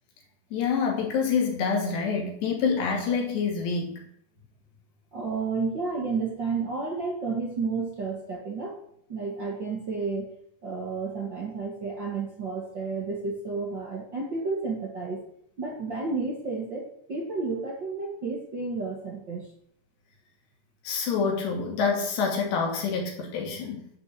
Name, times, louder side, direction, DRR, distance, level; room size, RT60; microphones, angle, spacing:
voice 1, 0.5-4.0 20.8-23.9, left 5 dB, 85° left, 0 dB, 4.7 m, -27 dB
voice 2, 5.1-8.8 9.1-10.3 10.6-15.2 15.6-19.5, right 4 dB, 50° right, -2 dB, 1.4 m, -31 dB
12.0 x 5.2 x 8.2 m, 0.70 s
omnidirectional pair, 4.8 m